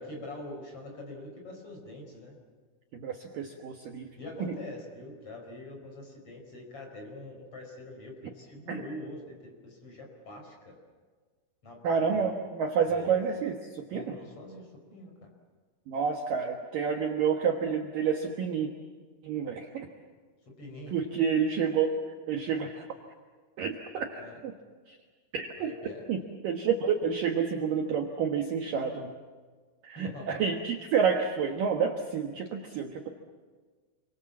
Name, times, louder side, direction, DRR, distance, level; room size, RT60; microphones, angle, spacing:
voice 1, 0.0-2.4 4.2-10.8 11.6-12.3 12.9-13.2 13.9-15.3 20.5-20.9 24.2-24.4 25.6-26.1 30.0-30.4, left 1 dB, 30° left, 1 dB, 5.8 m, -44 dB
voice 2, 2.9-4.1 8.7-8.8 11.8-14.0 15.9-18.7 19.2-19.9 20.9-21.9 22.3-22.9 23.6-24.5 24.9-25.0 25.3-25.7 26.1-26.2 26.4-29.1 29.8-33.1, right 6 dB, 60° right, 2 dB, 2.4 m, -29 dB
28.5 x 24.0 x 7.4 m, 1.5 s
omnidirectional pair, 5.4 m